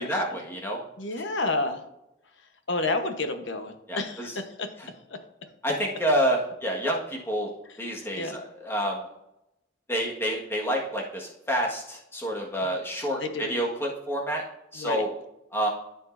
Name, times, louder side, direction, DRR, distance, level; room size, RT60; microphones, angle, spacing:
voice 1, 0.0-0.8 3.9-4.3 5.6-7.5 7.8-9.0 9.9-14.4 14.7-15.1 15.5-15.7, equal, 10° left, -2 dB, 1.5 m, -28 dB
voice 2, 1.0-1.8 2.7-4.7 5.1-5.2 8.2-8.4 13.2-13.5 14.7-15.0, left 2 dB, 80° left, 7 dB, 1.0 m, -30 dB
13.5 x 5.3 x 2.6 m, 0.87 s
head